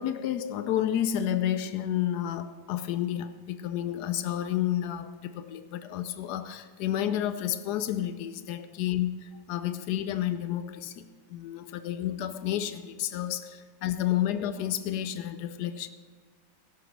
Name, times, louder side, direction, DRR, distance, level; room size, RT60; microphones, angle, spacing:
voice 1, 0.0-15.9, left 11 dB, 90° left, 12 dB, 1.1 m, -31 dB
16.5 x 13.0 x 3.2 m, 1.5 s
omnidirectional pair, 1.7 m